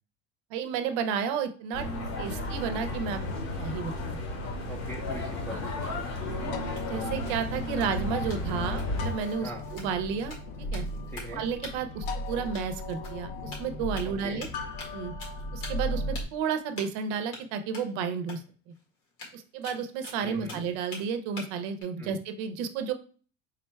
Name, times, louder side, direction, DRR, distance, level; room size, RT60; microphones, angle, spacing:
voice 1, 0.5-1.9 2.2-3.2 3.6-4.2 6.9-10.9 11.3-14.5 14.9-15.1 15.5-18.4 19.3-22.9, right 6 dB, 75° right, 9 dB, 0.7 m, -32 dB
sound 1, 1.7-9.1, left 1 dB, 40° left, 0.9 m, -33 dB
voice 2, 4.7-6.6 9.4-9.6 11.1-11.4 14.0-14.4 20.2-20.6 22.0-22.2, equal, 5° left, -1 dB, 0.5 m, -41 dB
sound 2, 6.2-16.2, left 1 dB, 70° left, 0.7 m, -37 dB
sound 3, 6.7-11.4 11.6-11.7 12.1-13.2 13.5-14.1 14.4-14.9 15.2-15.9 16.1-16.2 16.8-17.0 17.3-17.4 17.7-17.9 18.3-18.4 18.7-18.8 19.1-21.0 21.4-21.8, left 3 dB, 90° left, 1.8 m, -45 dB
3.7 x 2.2 x 4.4 m, 0.41 s
cardioid pair, 170°, 40 cm